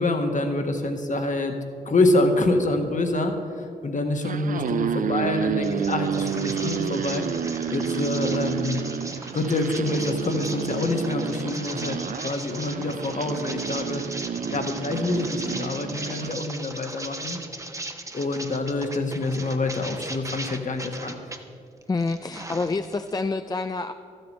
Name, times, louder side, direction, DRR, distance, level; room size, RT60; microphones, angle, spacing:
voice 1, 0.0-1.6 1.8-7.3 7.7-8.9 9.3-14.0 14.5-17.4 18.1-21.2, left 2 dB, 45° left, 5 dB, 1.5 m, -26 dB
sound 1, 4.1-16.4, right 7 dB, 50° right, 0.5 m, -30 dB
sound 2, 5.6-21.4 21.8-23.1, right 2 dB, 20° right, 1.0 m, -38 dB
voice 2, 21.9-23.9, left 3 dB, 20° left, 9 dB, 0.4 m, -27 dB
12.5 x 7.9 x 5.4 m, 2.4 s
hypercardioid pair, 40°, 18 cm